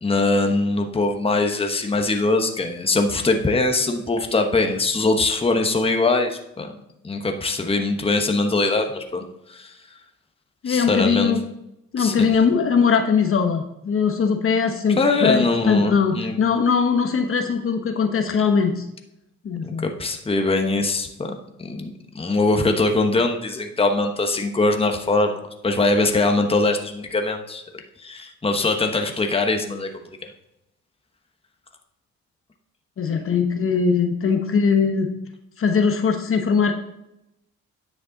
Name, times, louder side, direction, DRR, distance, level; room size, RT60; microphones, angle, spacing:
voice 1, 0.0-6.7 7.0-9.2 9.5-9.7 10.7-11.3 12.0-12.3 15.0-16.3 19.6-21.3 21.6-30.2, left 2 dB, 20° left, 4 dB, 1.1 m, -22 dB
voice 2, 10.6-11.4 11.9-18.9 19.4-19.8 33.0-35.1 35.6-36.7, left 6 dB, 45° left, 5 dB, 1.1 m, -20 dB
9.9 x 6.3 x 4.0 m, 0.84 s
cardioid pair, 90°, 30 cm